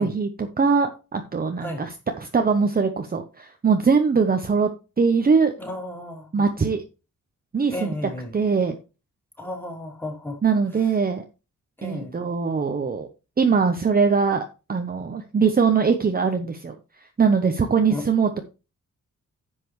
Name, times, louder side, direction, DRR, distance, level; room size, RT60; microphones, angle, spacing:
voice 1, 0.0-4.7 5.0-5.5 6.3-6.8 7.5-8.7 10.4-11.3 11.8-13.1 13.4-14.4 14.7-18.4, right 5 dB, 30° right, 0.9 m, -22 dB
voice 2, 5.6-6.3 7.7-8.3 9.4-10.4 11.8-12.2 17.9-18.0, left 1 dB, 5° left, 3.2 m, -33 dB
10.5 x 7.6 x 3.2 m
wide cardioid pair, 165°, 32 cm